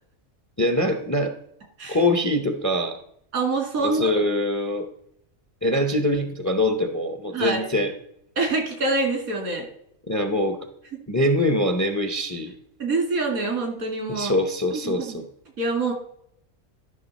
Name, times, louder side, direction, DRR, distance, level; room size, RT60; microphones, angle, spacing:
voice 1, 0.6-1.4 1.9-3.0 3.8-4.9 5.6-7.9 10.1-10.6 11.1-12.5 14.1-15.2, left 1 dB, 20° left, 8 dB, 0.5 m, -23 dB
voice 2, 3.3-4.1 7.3-7.6 8.4-9.7 12.8-14.4 14.7-15.2 15.6-15.9, right 3 dB, 90° right, 2 dB, 2.7 m, -25 dB
12.0 x 5.5 x 4.1 m, 0.72 s
omnidirectional pair, 1.5 m